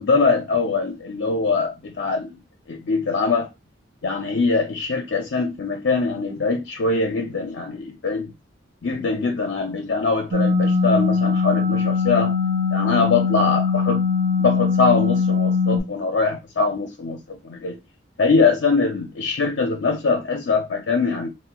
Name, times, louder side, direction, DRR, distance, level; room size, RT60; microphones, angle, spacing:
voice 1, 0.0-2.4 2.7-3.5 4.0-8.3 8.8-12.3 12.7-14.0 14.4-17.8 18.2-21.3, left 4 dB, 65° left, 0.5 m, -22 dB
sound 1, 10.3-15.8, left 5 dB, 85° right, 0.7 m, -21 dB
4.4 x 2.1 x 2.2 m
head